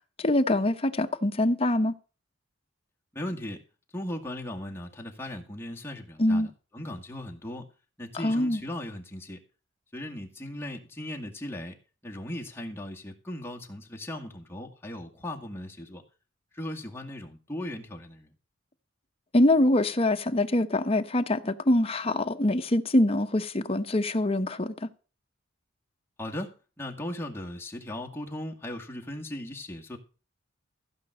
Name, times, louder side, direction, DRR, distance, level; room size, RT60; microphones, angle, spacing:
voice 1, 0.2-1.9 6.2-6.5 8.2-8.6 19.3-24.9, left 1 dB, 30° left, 0.9 m, -24 dB
voice 2, 3.1-3.6 3.9-7.7 8.0-9.4 9.9-11.7 12.0-16.0 16.5-18.3 26.2-26.5 26.8-30.0, left 1 dB, 10° left, 2.0 m, -38 dB
15.5 x 5.3 x 7.8 m
head